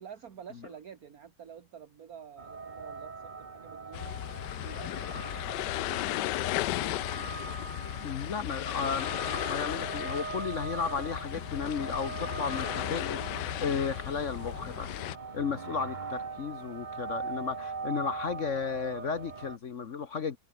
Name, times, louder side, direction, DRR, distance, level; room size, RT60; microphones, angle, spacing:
voice 1, 0.0-4.1 4.6-8.5, right 8 dB, 55° right, 1.9 m, -50 dB
sound 1, 2.4-19.6, right 4 dB, 30° right, 1.2 m, -41 dB
sound 2, 3.9-15.2, left 16 dB, 80° left, 1.2 m, -35 dB
voice 2, 7.8-14.9 15.3-20.4, left 6 dB, 50° left, 1.3 m, -34 dB
omnidirectional pair, 1.9 m